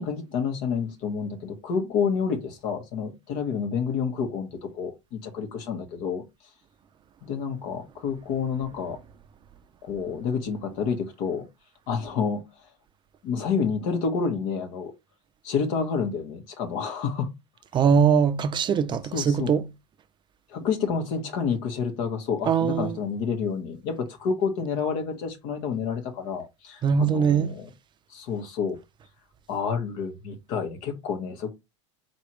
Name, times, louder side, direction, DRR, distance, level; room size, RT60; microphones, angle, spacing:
voice 1, 0.0-6.2 7.2-9.0 9.8-11.4 11.9-12.4 13.2-14.9 15.4-17.3 19.1-19.5 20.5-27.7 28.1-28.8 29.5-31.5, left 6 dB, 60° left, 1.6 m, -29 dB
voice 2, 17.7-19.7 22.5-23.0 26.8-27.6, right 6 dB, 30° right, 0.5 m, -22 dB
4.5 x 3.1 x 3.1 m
supercardioid pair, 110°, 16 cm